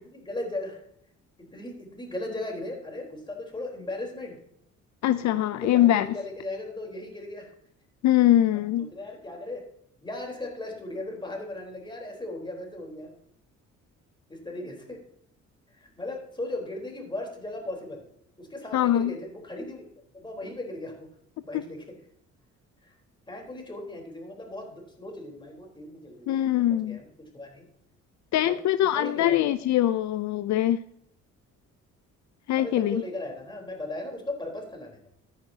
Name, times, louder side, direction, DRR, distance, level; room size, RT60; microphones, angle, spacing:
voice 1, 0.3-0.8 1.5-4.4 5.4-7.5 8.8-9.7 10.0-13.1 14.3-15.0 15.7-18.0 18.4-19.9 20.1-21.1 21.4-21.8 22.8-22.9 23.3-26.4 26.7-27.1 27.3-27.6 28.5-29.5 32.5-35.0, left 2 dB, 15° left, 0 dB, 3.8 m, -37 dB
voice 2, 5.0-6.1 8.0-8.9 18.7-19.1 21.5-21.6 26.3-27.0 28.3-30.8 32.5-33.0, left 13 dB, 70° left, 14 dB, 0.5 m, -23 dB
14.0 x 9.4 x 2.8 m, 0.72 s
cardioid pair, 90°, 30 cm